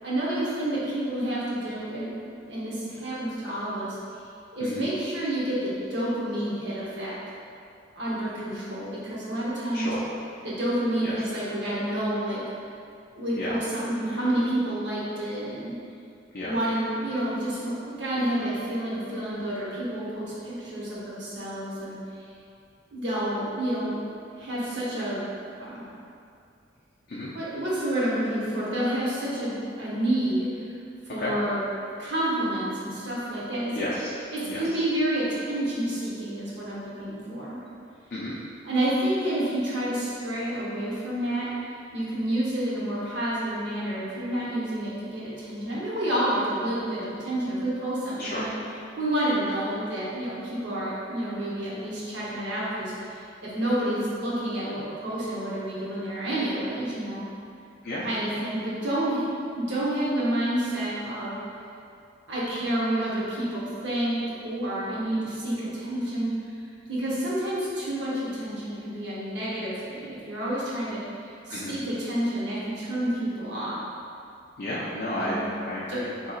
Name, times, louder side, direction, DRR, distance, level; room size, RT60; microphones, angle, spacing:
voice 1, 0.0-2.1 2.5-4.0 4.5-7.1 8.0-9.9 10.4-12.4 13.2-15.7 16.4-22.3 22.9-24.0 24.4-25.2 25.6-25.9 27.3-30.7 31.1-31.6 32.0-33.9 34.3-37.6 38.6-48.5 49.0-57.3 58.0-59.3 59.5-61.4 62.3-66.3 66.9-73.8 75.2-75.5 75.9-76.0, right 1 dB, 65° right, -7 dB, 0.9 m, -29 dB
voice 2, 33.7-34.1 34.4-34.6 38.1-38.3 48.2-48.5 57.8-58.1 71.5-71.7 74.6-76.3, left 1 dB, 50° left, -7 dB, 0.4 m, -32 dB
3.9 x 2.8 x 2.4 m, 2.5 s
head